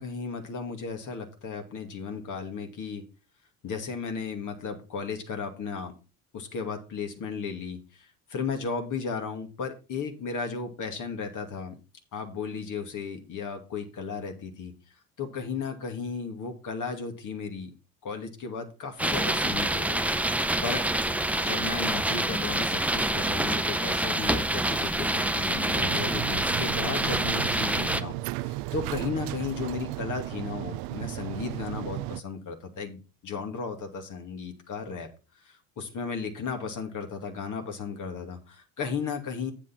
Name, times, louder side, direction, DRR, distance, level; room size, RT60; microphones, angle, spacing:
voice 1, 0.0-3.1 3.6-6.0 6.3-11.8 12.1-14.7 15.2-17.7 18.0-20.0 20.6-20.9 21.4-35.1 35.4-39.5, left 5 dB, 45° left, 5 dB, 2.4 m, -35 dB
sound 1, 19.0-28.0, right 1 dB, 5° right, 0.6 m, -27 dB
sound 2, 25.8-32.2, right 18 dB, 60° right, 0.5 m, -35 dB
8.3 x 7.4 x 4.3 m, 0.32 s
hypercardioid pair, 70°, 42 cm